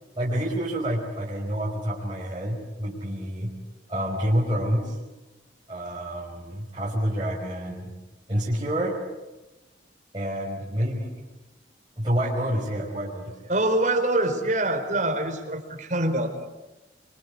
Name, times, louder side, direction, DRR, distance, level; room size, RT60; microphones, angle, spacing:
voice 1, 0.2-3.5 3.9-4.9 5.7-8.0 8.3-9.0 10.1-11.1 12.0-13.5, equal, 25° right, -5 dB, 5.3 m, -28 dB
voice 2, 13.5-16.5, right 1 dB, 40° right, 4 dB, 4.3 m, -25 dB
28.5 x 25.0 x 8.5 m, 1.0 s
head